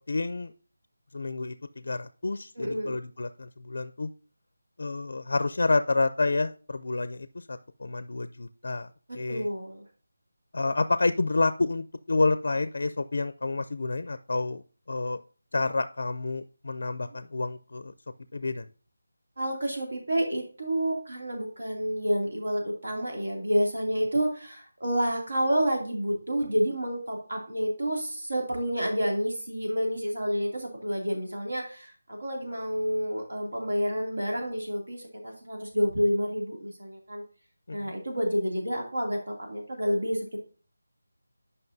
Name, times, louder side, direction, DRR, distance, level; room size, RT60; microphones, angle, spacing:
voice 1, 0.1-0.5 1.1-4.1 4.8-8.9 9.1-9.5 10.5-15.2 15.5-17.9 18.3-18.7 37.7-37.9, left 3 dB, 55° left, 12 dB, 0.4 m, -29 dB
voice 2, 2.6-2.9 9.1-9.8 17.0-17.2 19.4-37.2 37.7-40.4, equal, 80° right, 1 dB, 2.6 m, -29 dB
11.0 x 5.5 x 2.6 m, 0.40 s
figure-of-eight pair, 175°, 0 cm